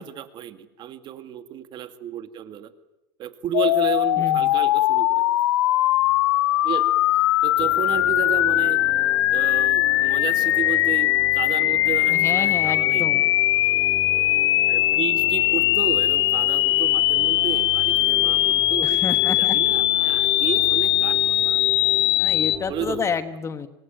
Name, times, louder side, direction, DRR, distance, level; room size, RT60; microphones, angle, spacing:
voice 1, 0.0-2.7 3.2-5.2 6.6-6.9 7.4-8.8 9.3-13.3 13.7-13.8 14.7-21.6 22.7-23.1, right 9 dB, 35° right, 11 dB, 2.1 m, -32 dB
sound 1, 3.5-22.6, left 15 dB, 90° left, 0.9 m, -20 dB
voice 2, 4.2-4.5 12.1-13.2 18.8-19.6 20.0-20.1 22.2-23.7, left 6 dB, 20° left, 12 dB, 1.3 m, -29 dB
sound 2, 7.6-23.0, left 2 dB, 5° left, 3.4 m, -39 dB
26.5 x 21.0 x 9.1 m, 0.95 s
supercardioid pair, 145°, 13 cm